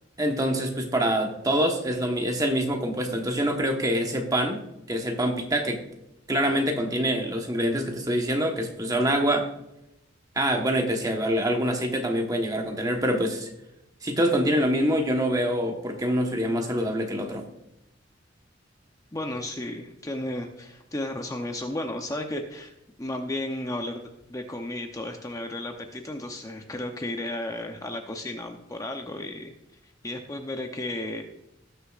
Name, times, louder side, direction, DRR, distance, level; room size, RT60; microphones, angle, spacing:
voice 1, 0.2-4.6 4.9-5.8 6.3-9.5 10.4-13.5 14.0-17.4, equal, 20° right, 3 dB, 1.2 m, -25 dB
voice 2, 19.1-22.7 23.0-29.5 30.0-31.2, left 1 dB, 15° left, 4 dB, 0.7 m, -33 dB
18.5 x 6.5 x 2.5 m, 0.86 s
head